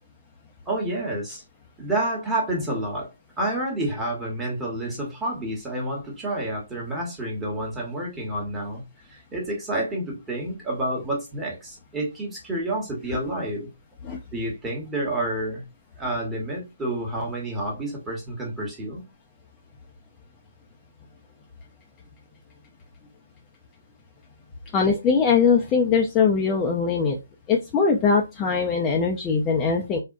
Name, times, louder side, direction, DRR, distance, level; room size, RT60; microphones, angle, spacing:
voice 1, 0.7-1.4 1.8-13.7 14.3-15.6 16.0-19.0, right 1 dB, 10° right, 1.0 m, -29 dB
voice 2, 24.7-27.2 27.5-30.0, left 5 dB, 20° left, 0.4 m, -21 dB
3.4 x 2.1 x 2.5 m
figure-of-eight pair, 145°, 0 cm